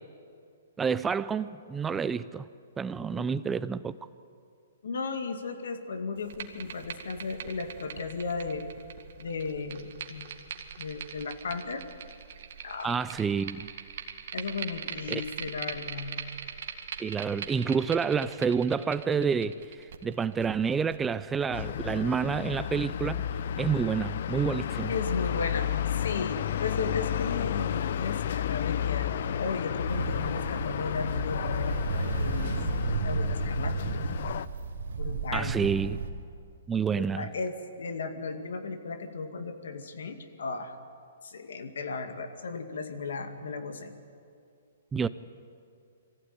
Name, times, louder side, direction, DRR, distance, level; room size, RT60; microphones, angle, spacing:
voice 1, 0.8-2.5 2.8-4.0 12.8-13.7 15.1-15.2 17.0-19.6 20.0-23.2 23.6-24.9 35.3-36.0 36.7-37.3 44.9-45.1, right 6 dB, 10° right, 16 dB, 0.5 m, -28 dB
voice 2, 3.1-3.5 4.8-8.7 9.2-10.5 10.8-11.8 12.6-13.0 14.3-16.2 24.9-32.6 33.0-33.9 35.0-35.6 36.9-40.8 41.2-43.9, left 4 dB, 75° left, 7 dB, 2.2 m, -35 dB
sound 1, 6.2-21.5, right 7 dB, 60° right, 1.9 m, -42 dB
sound 2, 21.5-34.5, left 9 dB, 60° left, 0.6 m, -32 dB
Ocean, 29.9-36.1, right 4 dB, 75° right, 2.4 m, -33 dB
23.0 x 15.5 x 9.6 m, 2.4 s
hypercardioid pair, 140°, 0 cm